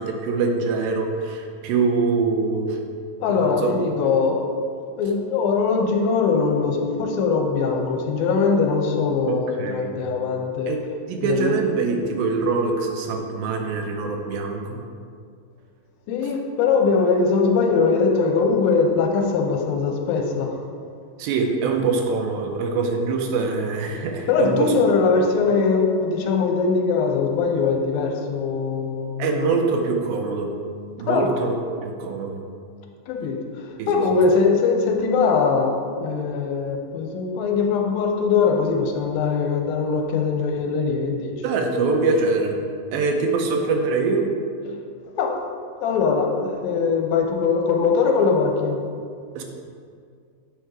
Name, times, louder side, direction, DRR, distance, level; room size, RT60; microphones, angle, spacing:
voice 1, 0.0-2.8 3.3-3.7 9.3-10.0 10.7-10.8 11.1-14.8 21.2-24.7 29.2-30.5 31.0-31.5 31.8-32.4 33.8-34.0 41.4-42.6 42.9-44.3 49.4-49.5, right 4 dB, 80° right, 2 dB, 2.4 m, -24 dB
voice 2, 3.2-4.4 5.0-10.7 11.2-11.6 16.1-20.6 24.3-29.6 31.1-31.3 33.1-41.4 45.2-45.3 45.8-48.8, left 5 dB, 85° left, 2 dB, 2.4 m, -21 dB
8.0 x 4.6 x 4.6 m, 2.2 s
omnidirectional pair, 4.3 m